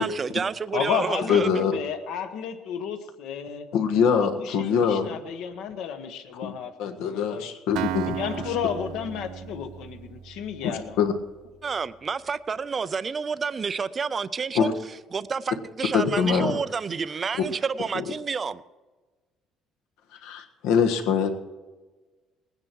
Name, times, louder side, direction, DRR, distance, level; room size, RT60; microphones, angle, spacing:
voice 1, 0.0-1.7 11.6-14.7 15.1-18.6, right 5 dB, 20° right, 0.3 m, -29 dB
voice 2, 0.7-3.7 4.1-7.5 8.0-11.0, left 8 dB, 70° left, 1.1 m, -32 dB
voice 3, 1.3-1.7 3.7-5.2 6.4-6.5 6.8-8.2 10.6-11.1 14.5-14.7 15.9-16.6 17.9-18.0 20.2-21.3, left 7 dB, 85° left, 1.5 m, -23 dB
Acoustic guitar, 7.8-11.6, right 10 dB, 75° right, 0.6 m, -35 dB
19.0 x 9.7 x 4.6 m
cardioid pair, 180°, 0 cm